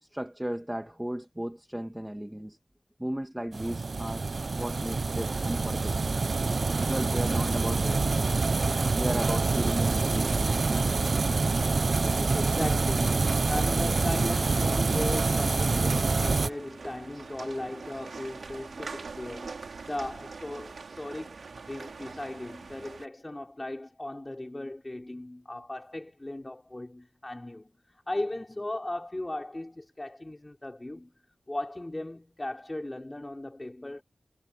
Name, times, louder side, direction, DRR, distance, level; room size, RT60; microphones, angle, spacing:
voice 1, 0.0-2.6 3.0-4.3 4.6-6.2 6.8-8.3 9.0-10.8 12.2-12.5, equal, 10° right, 2.5 m, -35 dB
sound 1, 3.5-16.5, right 3 dB, 60° right, 0.8 m, -26 dB
voice 2, 12.0-31.1 31.5-34.0, left 1 dB, 25° left, 4.6 m, -37 dB
sound 2, 13.4-23.1, right 4 dB, 85° right, 5.2 m, -44 dB
wide cardioid pair, 65°, 0 cm